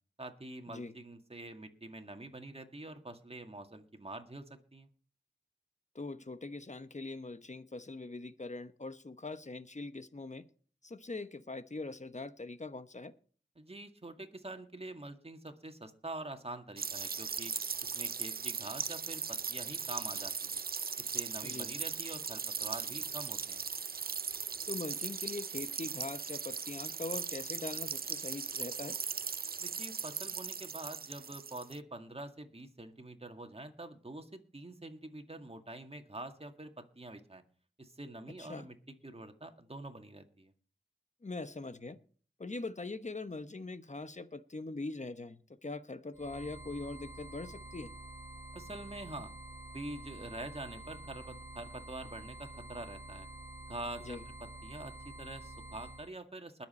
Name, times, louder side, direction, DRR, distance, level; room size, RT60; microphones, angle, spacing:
voice 1, 0.2-4.9 13.6-17.5 17.8-20.6 21.0-23.6 29.6-37.4 37.8-38.8 39.0-40.5 48.5-49.3 49.7-53.3 53.7-54.2 54.6-56.7, right 2 dB, 35° right, 6 dB, 2.0 m, -46 dB
voice 2, 5.9-10.4 10.8-13.1 21.4-21.7 24.7-29.0 38.4-38.7 41.2-42.0 42.4-47.9 54.0-54.2, left 3 dB, 40° left, 12 dB, 1.1 m, -42 dB
sound 1, 16.8-31.8, right 6 dB, 55° right, 0.5 m, -38 dB
sound 2, 46.1-56.1, right 1 dB, 10° right, 4.2 m, -48 dB
21.0 x 7.4 x 4.3 m, 0.42 s
wide cardioid pair, 45°, 18 cm